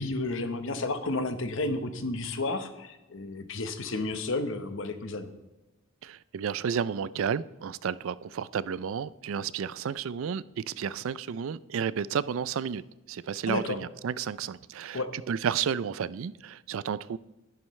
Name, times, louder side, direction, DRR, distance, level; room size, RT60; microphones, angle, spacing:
voice 1, 0.0-5.3 13.5-13.8 14.9-15.1, left 2 dB, 65° left, 1.0 m, -32 dB
voice 2, 6.0-12.8 13.1-15.0 15.3-17.2, right 7 dB, 70° right, 0.4 m, -32 dB
11.0 x 10.5 x 3.2 m
head